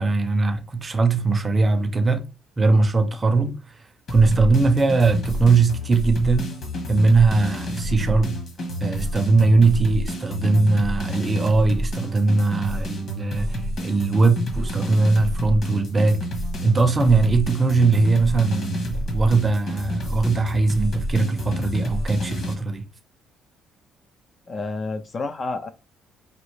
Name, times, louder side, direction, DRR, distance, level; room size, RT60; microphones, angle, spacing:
voice 1, 0.0-2.2 2.6-3.6 4.1-6.5 6.9-8.3 8.8-16.2 16.6-22.8, right 3 dB, 20° right, 0.6 m, -20 dB
sound 1, 4.1-22.5, equal, 45° left, 1.4 m, -29 dB
voice 2, 24.5-25.7, left 3 dB, 30° left, 0.3 m, -29 dB
5.1 x 2.7 x 3.1 m
cardioid pair, 155°, 0 cm